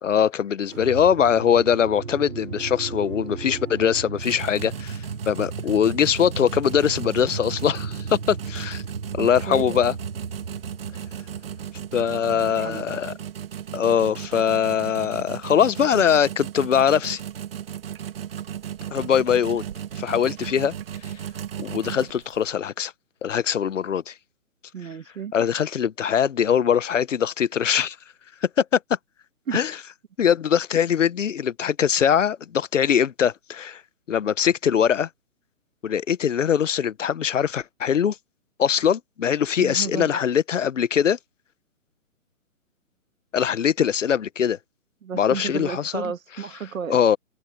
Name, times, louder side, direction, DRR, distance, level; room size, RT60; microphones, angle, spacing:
voice 1, 0.0-8.8 9.1-9.9 11.9-13.1 13.7-17.2 18.9-19.6 20.0-20.7 21.0-21.1 21.6-22.9 23.2-24.1 25.3-28.0 28.4-28.8 29.5-29.8 30.2-33.8 34.1-35.1 35.8-38.2 38.6-41.2 43.3-44.6 45.1-46.1 46.9-47.2, left 8 dB, 55° left, 1.1 m, -22 dB
sound 1, 0.7-12.9, right 5 dB, 85° right, 5.2 m, -35 dB
sound 2, 4.2-22.5, right 9 dB, 40° right, 1.6 m, -36 dB
voice 2, 9.2-9.8 12.3-12.8 24.7-25.3 29.5-29.6 39.6-40.2 45.0-47.0, right 7 dB, 65° right, 1.7 m, -33 dB
open air
hypercardioid pair, 160°, 44 cm